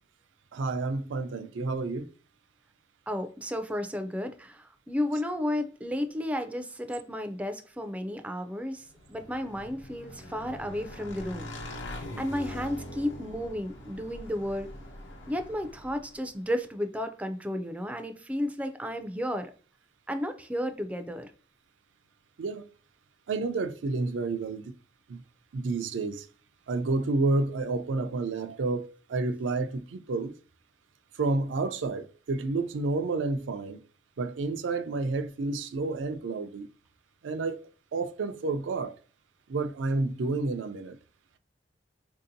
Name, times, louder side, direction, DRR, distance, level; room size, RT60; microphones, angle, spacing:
voice 1, 0.5-2.1 22.4-22.6 23.3-24.7 25.1-25.2 25.5-26.3 26.7-30.3 31.2-33.8 34.2-36.7 37.2-37.6 37.9-39.0 39.5-41.0, right 3 dB, 90° right, 0.4 m, -30 dB
voice 2, 3.1-11.5 12.2-14.7 15.3-19.5 20.1-21.3, left 1 dB, 10° right, 0.3 m, -33 dB
Motorcycle / Engine, 8.9-16.3, left 1 dB, 85° left, 1.0 m, -42 dB
4.3 x 2.7 x 2.6 m
head